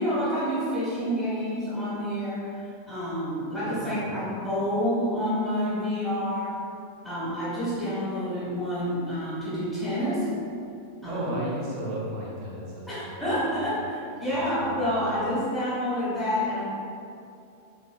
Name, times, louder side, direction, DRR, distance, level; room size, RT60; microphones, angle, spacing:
voice 1, 0.0-2.5 2.9-6.6 7.0-10.3 11.0-11.3 12.9-16.6, equal, 10° left, -11 dB, 1.5 m, -28 dB
voice 2, 3.6-4.2 11.1-13.7 14.6-15.1, right 1 dB, 40° right, -5 dB, 0.8 m, -35 dB
3.2 x 3.0 x 2.3 m, 2.5 s
figure-of-eight pair, 90°, 0 cm